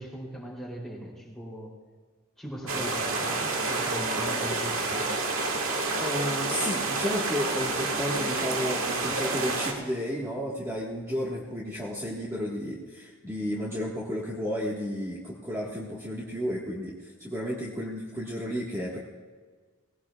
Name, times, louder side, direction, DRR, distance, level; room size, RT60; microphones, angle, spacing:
voice 1, 0.0-1.7 2.4-5.1, right 1 dB, ahead, -4 dB, 3.3 m, -39 dB
sound 1, 2.7-9.7, right 3 dB, 75° right, 1.9 m, -29 dB
voice 2, 6.0-19.0, equal, 15° right, -5 dB, 1.6 m, -32 dB
19.5 x 17.5 x 2.4 m, 1.5 s
head